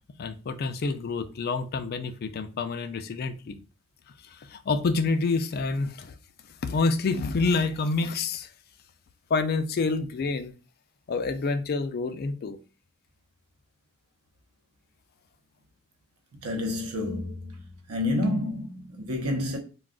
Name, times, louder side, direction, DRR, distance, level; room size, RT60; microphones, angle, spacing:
voice 1, 0.2-3.6 4.3-6.1 6.6-8.5 9.3-10.5 11.1-12.6, left 4 dB, 45° left, 0.3 m, -28 dB
voice 2, 16.4-17.5 17.9-19.6, left 1 dB, 80° right, 0.8 m, -29 dB
2.3 x 2.3 x 3.6 m
head